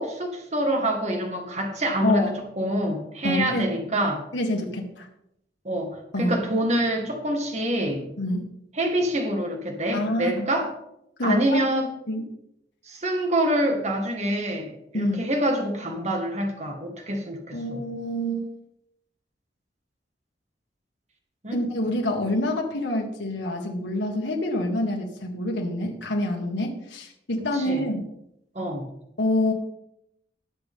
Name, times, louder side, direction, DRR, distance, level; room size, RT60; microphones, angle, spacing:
voice 1, 0.0-4.2 5.6-8.1 8.8-10.7 11.2-11.9 12.9-17.8 21.4-21.6 27.5-27.8 28.6-28.9, right 1 dB, 40° right, 3 dB, 2.0 m, -26 dB
voice 2, 3.2-3.7 4.3-5.1 6.1-6.4 8.2-8.5 9.9-10.5 11.2-11.6 12.1-12.3 14.9-15.2 17.5-18.5 21.5-28.0 29.2-29.5, left 1 dB, 85° left, 0 dB, 1.8 m, -26 dB
19.0 x 6.9 x 3.8 m, 0.79 s
head